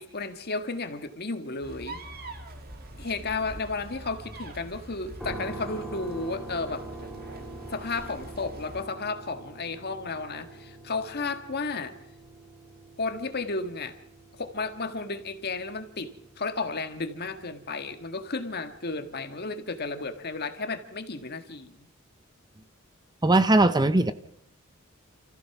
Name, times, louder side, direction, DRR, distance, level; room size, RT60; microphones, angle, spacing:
voice 1, 0.0-2.0 3.0-6.9 7.7-11.9 13.0-14.0 14.4-21.8, left 3 dB, 50° left, 8 dB, 1.7 m, -33 dB
sound 1, 1.6-8.9, right 1 dB, 45° right, 2.2 m, -44 dB
sound 2, 5.2-19.2, right 2 dB, ahead, 2.6 m, -45 dB
voice 2, 23.2-24.1, right 2 dB, 20° right, 13 dB, 0.7 m, -19 dB
29.0 x 15.0 x 6.0 m, 0.75 s
head